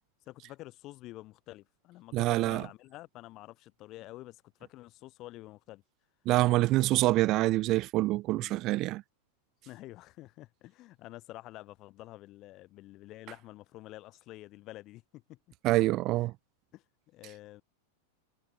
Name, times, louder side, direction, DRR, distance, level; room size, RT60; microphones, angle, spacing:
voice 1, 0.3-5.8 8.4-8.6 9.7-15.4 16.7-17.6, left 17 dB, 35° left, 7.5 m, -49 dB
voice 2, 2.1-2.6 6.3-9.0 15.6-16.3, right 18 dB, 40° right, 0.3 m, -26 dB
figure-of-eight pair, 90°, 0 cm